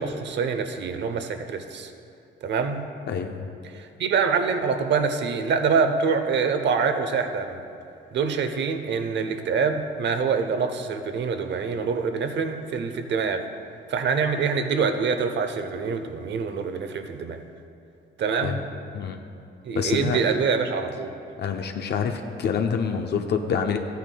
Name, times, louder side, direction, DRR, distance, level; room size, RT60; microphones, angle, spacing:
voice 1, 0.0-1.9 2.4-2.8 3.7-7.6 8.1-13.4 13.9-17.4 18.2-18.6 19.6-21.1, right 5 dB, 65° right, 8 dB, 0.8 m, -25 dB
voice 2, 3.1-3.5 18.4-18.6 18.9-19.2 19.8-20.2 21.4-23.8, left 6 dB, 60° left, 4 dB, 0.6 m, -26 dB
13.5 x 9.3 x 2.3 m, 2.6 s
cardioid pair, 90°, 20 cm